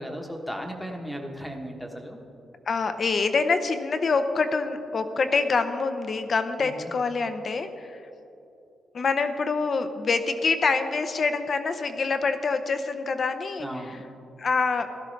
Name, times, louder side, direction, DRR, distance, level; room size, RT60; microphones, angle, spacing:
voice 1, 0.0-2.2 6.6-6.9 13.6-14.0, equal, ahead, 2 dB, 1.1 m, -36 dB
voice 2, 2.7-8.0 8.9-14.0 14.4-15.0, left 4 dB, 40° left, 9 dB, 0.7 m, -26 dB
16.5 x 13.0 x 3.3 m, 2.8 s
wide cardioid pair, 155°, 0 cm